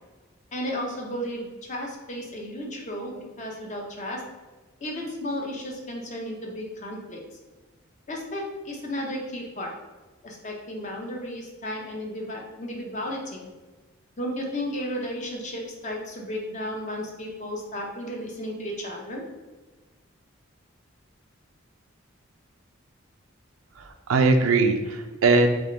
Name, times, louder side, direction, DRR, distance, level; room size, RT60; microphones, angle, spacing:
voice 1, 0.5-4.2 4.8-7.2 8.1-9.7 10.2-13.5 14.2-19.2, equal, 35° left, -1 dB, 0.7 m, -33 dB
voice 2, 23.8-25.5, right 3 dB, 85° right, 5 dB, 0.5 m, -21 dB
3.5 x 3.2 x 3.9 m, 1.2 s
head